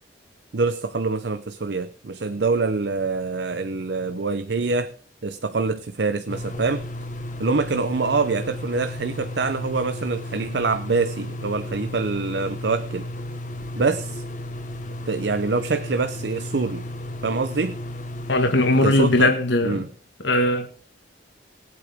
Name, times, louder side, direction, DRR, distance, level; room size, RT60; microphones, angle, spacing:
voice 1, 0.5-4.9 5.2-6.9 7.4-13.1 13.8-14.2 15.0-16.8 17.2-17.8 18.8-19.3 19.6-19.9, right 4 dB, 70° right, 0.7 m, -25 dB
sound 1, 6.3-19.2, left 1 dB, 45° left, 1.3 m, -34 dB
voice 2, 18.3-19.8 20.2-20.7, left 2 dB, 80° left, 1.7 m, -19 dB
20.5 x 8.5 x 3.5 m
head